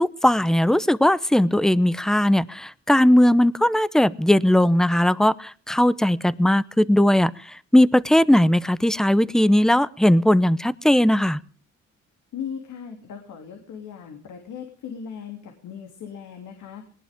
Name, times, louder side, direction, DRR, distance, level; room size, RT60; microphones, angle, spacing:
voice 1, 0.0-11.4, left 1 dB, ahead, 18 dB, 0.8 m, -18 dB
voice 2, 12.3-16.9, left 7 dB, 75° left, 4 dB, 3.1 m, -38 dB
20.0 x 18.5 x 3.7 m, 0.41 s
cardioid pair, 90°, 30 cm